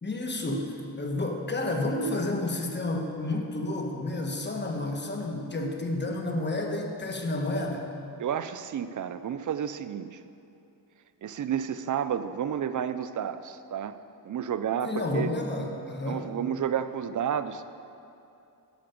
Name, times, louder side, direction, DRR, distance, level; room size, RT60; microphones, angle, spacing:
voice 1, 0.0-7.9 14.8-16.3, left 2 dB, 25° left, 2 dB, 1.3 m, -30 dB
voice 2, 8.2-10.2 11.2-14.0 14.2-15.3 16.1-17.6, right 8 dB, 50° right, 12 dB, 0.5 m, -31 dB
10.5 x 6.8 x 5.3 m, 2.7 s
cardioid pair, 90°, 41 cm